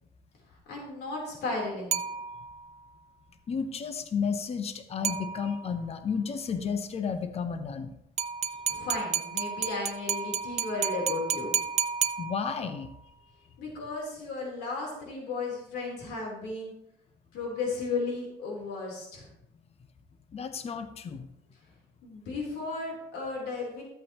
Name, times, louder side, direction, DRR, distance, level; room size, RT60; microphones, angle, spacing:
voice 1, 0.7-2.0 8.7-11.5 13.6-16.7 17.3-19.3 22.0-23.8, left 3 dB, 75° left, -2 dB, 3.7 m, -34 dB
sound 1, 1.9-2.7 5.0-5.8 8.2-12.8, right 7 dB, 40° right, 0.6 m, -32 dB
voice 2, 3.5-7.9 12.2-12.9 20.3-21.3, left 6 dB, 35° left, 9 dB, 0.9 m, -32 dB
13.5 x 8.3 x 3.0 m, 0.78 s
cardioid pair, 110°, 17 cm